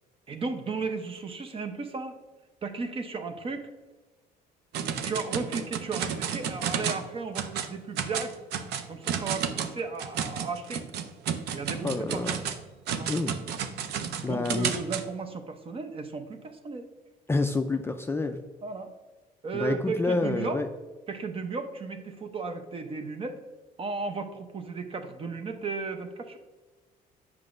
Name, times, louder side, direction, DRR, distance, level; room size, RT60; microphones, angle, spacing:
voice 1, 0.3-2.2 2.6-3.7 5.0-8.4 8.9-10.8 11.5-12.4 12.9-13.1 14.2-16.9 18.6-18.9 19.4-20.6 21.1-23.4 23.8-26.4, right 4 dB, 35° right, 8 dB, 0.7 m, -35 dB
sound 1, 4.7-7.1 7.3-7.7 8.0-15.0, right 8 dB, 75° right, 0.6 m, -32 dB
voice 2, 11.8-12.4 13.1-13.4 14.2-14.7 17.3-18.4 19.5-20.7, left 3 dB, 15° left, 5 dB, 0.3 m, -28 dB
7.7 x 5.9 x 2.5 m, 1.2 s
cardioid pair, 110°, 17 cm